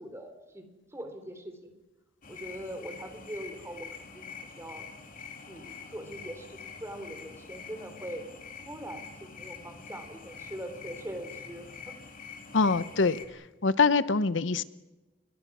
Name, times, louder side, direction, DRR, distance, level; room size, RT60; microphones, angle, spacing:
voice 1, 0.0-1.7 2.3-4.9 5.5-8.3 8.7-11.9, right 1 dB, 15° right, 7 dB, 3.5 m, -42 dB
sound 1, 2.2-13.3, left 5 dB, 45° left, 3.1 m, -46 dB
voice 2, 12.5-13.2 13.6-14.6, left 4 dB, 75° left, 16 dB, 0.8 m, -24 dB
28.5 x 22.5 x 6.2 m, 1.1 s
head